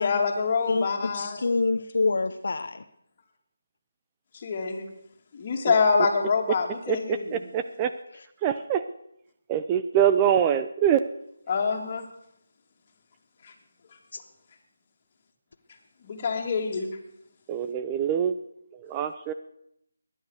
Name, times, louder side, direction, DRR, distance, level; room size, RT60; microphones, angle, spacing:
voice 1, 0.0-1.4 4.3-4.9 5.3-7.4 11.5-12.1 13.4-13.5 16.0-16.9, left 5 dB, 35° left, 2 dB, 2.6 m, -26 dB
voice 2, 0.7-2.8 8.1-8.3 14.1-14.2, left 3 dB, 60° left, 9 dB, 0.9 m, -27 dB
voice 3, 6.9-7.9 8.4-8.8 9.5-11.0 17.5-18.4 18.9-19.3, right 9 dB, 20° right, 10 dB, 0.5 m, -24 dB
20.0 x 10.0 x 6.5 m, 0.77 s
figure-of-eight pair, 160°, 0 cm